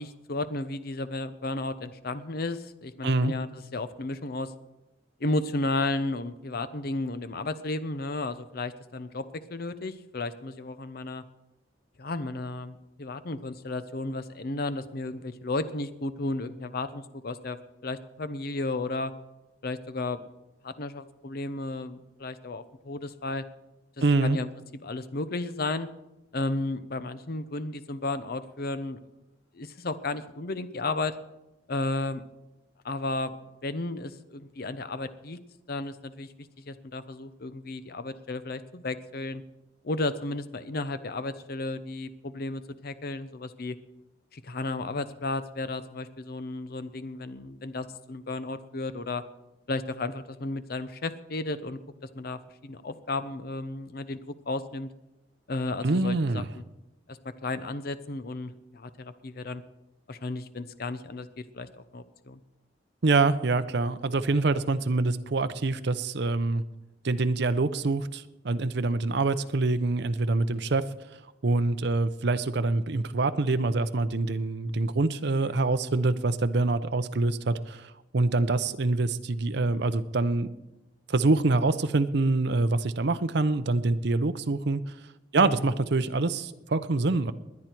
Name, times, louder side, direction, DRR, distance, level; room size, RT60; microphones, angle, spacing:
voice 1, 0.0-4.5 5.2-9.2 9.5-11.2 12.0-19.1 19.6-20.2 20.6-23.4 24.2-24.5 24.8-25.9 26.3-29.0 29.5-31.2 31.7-32.2 32.8-33.3 33.6-35.4 35.7-36.3 36.7-39.4 39.8-43.8 44.3-49.2 49.7-54.9 55.5-56.6 57.1-59.6 60.1-62.4 75.4-75.7 85.4-85.6, left 2 dB, 55° left, 13 dB, 0.7 m, -33 dB
voice 2, 3.0-3.3 24.0-24.4 55.8-56.5 63.0-66.6 67.0-70.8 71.4-80.5 81.1-84.8 85.3-87.3, right 3 dB, 65° right, 11 dB, 0.7 m, -25 dB
20.5 x 9.7 x 4.5 m, 0.97 s
head